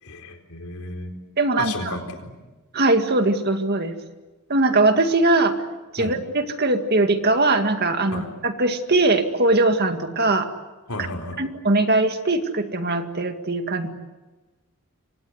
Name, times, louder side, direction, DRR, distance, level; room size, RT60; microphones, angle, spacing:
voice 1, 0.0-1.2 1.6-2.3 6.0-6.2 8.1-8.3 10.9-11.4, left 2 dB, 75° left, 4 dB, 4.3 m, -33 dB
voice 2, 1.4-1.7 2.7-4.0 4.5-5.6 5.9-10.5 11.4-13.9, right 2 dB, 45° right, 7 dB, 2.1 m, -20 dB
28.0 x 25.0 x 8.0 m, 1.2 s
head